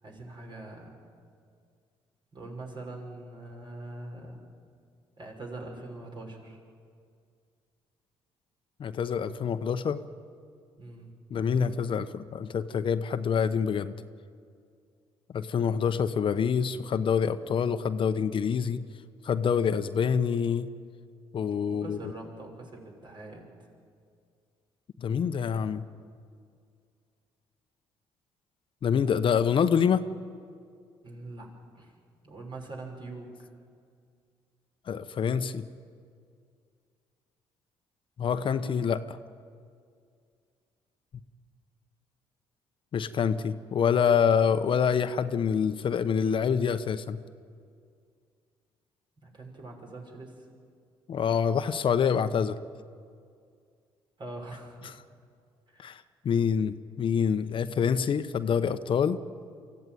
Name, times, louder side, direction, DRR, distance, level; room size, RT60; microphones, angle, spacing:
voice 1, 0.0-1.0 2.3-4.4 5.2-6.6 10.8-11.1 21.7-23.5 31.0-31.5 31.7-31.9 32.2-33.5 49.2-50.4 54.2-55.0 55.7-55.9, right 2 dB, 45° right, 1 dB, 6.0 m, -43 dB
voice 2, 8.8-10.0 11.3-13.9 15.3-18.8 19.2-20.7 21.3-22.0 25.0-25.8 28.8-30.0 34.9-35.6 38.2-39.2 42.9-47.2 51.1-52.5 54.8-54.9 55.8-59.2, left 7 dB, 50° left, 11 dB, 0.9 m, -26 dB
24.0 x 15.0 x 9.4 m, 2.2 s
supercardioid pair, 70°, 11 cm